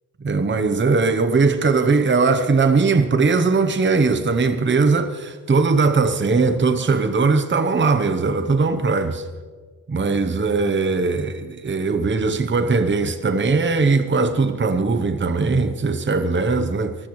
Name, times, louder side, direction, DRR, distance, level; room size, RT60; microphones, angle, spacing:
voice 1, 0.2-9.2 9.9-17.0, right 4 dB, 30° right, 0.9 m, -19 dB
24.0 x 15.0 x 3.2 m
wide cardioid pair, 110°, 40 cm